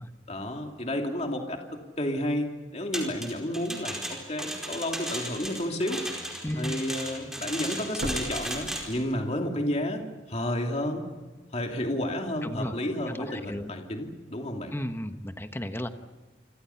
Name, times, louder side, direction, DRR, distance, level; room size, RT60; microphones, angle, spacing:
voice 1, 0.3-6.0 6.6-11.1 11.5-14.7, left 1 dB, 35° left, 3 dB, 2.7 m, -31 dB
sound 1, 2.9-9.0, equal, 5° right, 4.6 m, -35 dB
sound 2, 4.7-4.8 5.4-5.5 8.0-9.4 9.8-9.9, right 1 dB, 70° right, 1.7 m, -38 dB
voice 2, 6.4-6.8 12.4-12.7 13.1-13.7 14.7-15.9, left 1 dB, 10° left, 8 dB, 1.1 m, -34 dB
28.5 x 25.5 x 5.8 m, 1.4 s
head